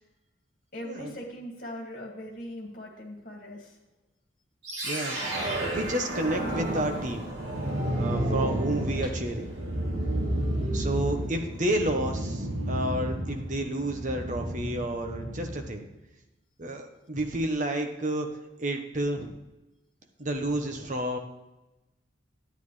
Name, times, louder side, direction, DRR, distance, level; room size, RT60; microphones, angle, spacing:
voice 1, 0.7-3.8 9.0-9.2, equal, 45° left, 0 dB, 2.2 m, -40 dB
sound 1, 4.6-15.8, right 1 dB, 70° right, 2.7 m, -31 dB
voice 2, 4.8-5.2 5.7-7.3 8.0-9.5 10.7-15.9 16.6-18.3 18.6-19.3 20.2-21.2, right 1 dB, 40° right, 4 dB, 1.0 m, -30 dB
10.5 x 9.3 x 3.2 m, 1.0 s
head